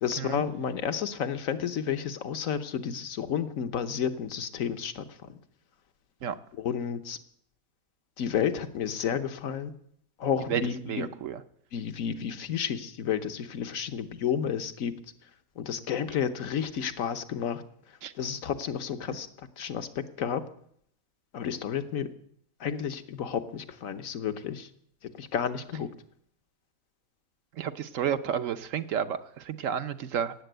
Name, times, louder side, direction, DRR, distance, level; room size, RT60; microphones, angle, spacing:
voice 1, 0.0-5.0 5.3-5.4 6.6-7.2 8.2-9.7 10.2-11.1 11.7-14.9 15.6-17.6 18.2-19.3 19.6-20.4 21.3-22.1 22.6-24.7 25.2-25.9, left 8 dB, 75° left, 10 dB, 1.4 m, -31 dB
voice 2, 10.5-11.4 18.0-18.1 27.6-30.3, right 8 dB, 70° right, 11 dB, 1.2 m, -31 dB
17.5 x 8.4 x 7.9 m, 0.67 s
omnidirectional pair, 1.4 m